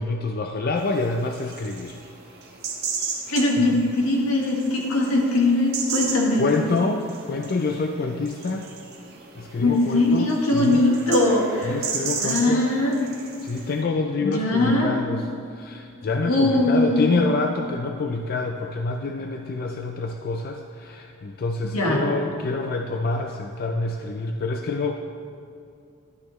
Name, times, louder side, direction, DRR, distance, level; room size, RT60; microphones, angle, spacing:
voice 1, 0.0-2.0 3.3-3.4 3.7-3.8 6.4-8.7 9.4-10.3 10.5-10.8 11.7-12.6 13.4-24.9, left 3 dB, 45° left, 4 dB, 0.4 m, -27 dB
sound 1, 0.8-13.8, right 5 dB, 50° right, 1.3 m, -35 dB
voice 2, 3.3-6.4 9.6-11.7 12.2-13.0 14.2-14.9 16.2-17.2 21.7-22.0, left 2 dB, 80° left, -1 dB, 1.7 m, -21 dB
12.0 x 9.2 x 3.1 m, 2.4 s
head